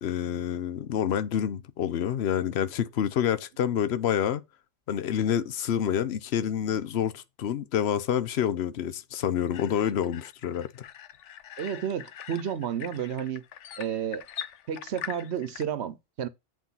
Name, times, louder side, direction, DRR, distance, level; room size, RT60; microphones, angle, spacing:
voice 1, 0.0-4.4 4.9-10.8, left 9 dB, 65° left, 1.0 m, -28 dB
sound 1, 9.5-15.6, left 10 dB, 85° left, 1.0 m, -43 dB
voice 2, 11.6-13.4 13.8-14.3 14.7-16.3, right 8 dB, 70° right, 1.1 m, -31 dB
8.3 x 4.6 x 5.7 m
omnidirectional pair, 1.2 m